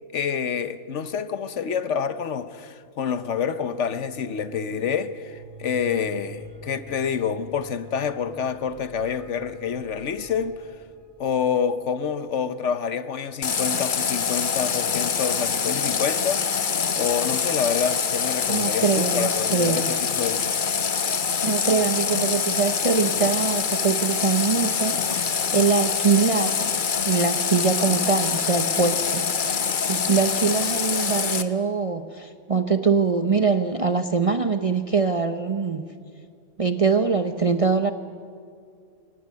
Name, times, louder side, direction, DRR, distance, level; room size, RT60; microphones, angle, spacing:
voice 1, 0.1-10.6 11.2-20.5, left 7 dB, 65° left, 1.1 m, -27 dB
sound 1, 3.4-11.7, right 1 dB, 80° right, 4.0 m, -47 dB
Water tap faucet, 13.4-31.4, left 6 dB, 45° left, 0.9 m, -25 dB
voice 2, 18.5-19.9 21.4-26.7 27.1-35.9 36.6-37.9, right 5 dB, 35° right, 0.6 m, -23 dB
22.0 x 17.5 x 9.5 m
omnidirectional pair, 1.4 m